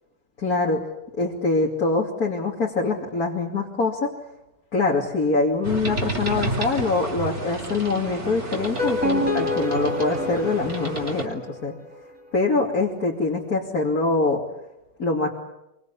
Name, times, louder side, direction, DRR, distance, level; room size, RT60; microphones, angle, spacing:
voice 1, 0.4-0.8 1.2-4.1 4.7-11.7 12.3-14.4 15.0-15.3, left 3 dB, 70° left, -2 dB, 3.2 m, -24 dB
sound 1, 5.6-11.3, right 1 dB, 45° right, 4.1 m, -31 dB
sound 2, 8.6-11.7, left 1 dB, 5° right, 4.6 m, -27 dB
26.0 x 24.0 x 8.4 m, 0.90 s
omnidirectional pair, 1.6 m